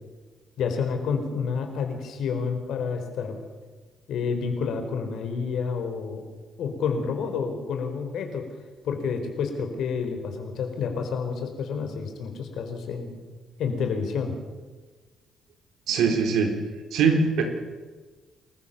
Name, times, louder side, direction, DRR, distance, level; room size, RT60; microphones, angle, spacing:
voice 1, 0.6-3.4 4.1-6.2 6.6-8.5 8.8-13.2 13.6-14.3, left 5 dB, 75° left, 6 dB, 4.4 m, -29 dB
voice 2, 15.9-16.5 16.9-17.4, right 5 dB, 85° right, 4 dB, 4.1 m, -21 dB
28.5 x 14.5 x 7.1 m, 1.3 s
cardioid pair, 90°, 0 cm